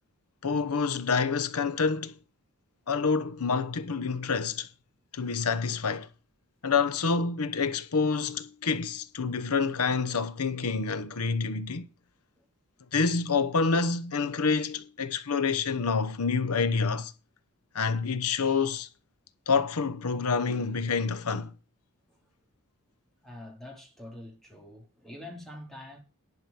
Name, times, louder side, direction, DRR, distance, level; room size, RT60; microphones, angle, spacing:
voice 1, 0.4-2.1 2.9-4.7 5.1-6.1 6.6-11.9 12.9-17.1 17.7-18.9 19.5-21.5, left 5 dB, 90° left, 0.9 m, -27 dB
voice 2, 23.2-26.0, left 1 dB, ahead, 2.9 m, -45 dB
11.0 x 5.4 x 7.0 m
head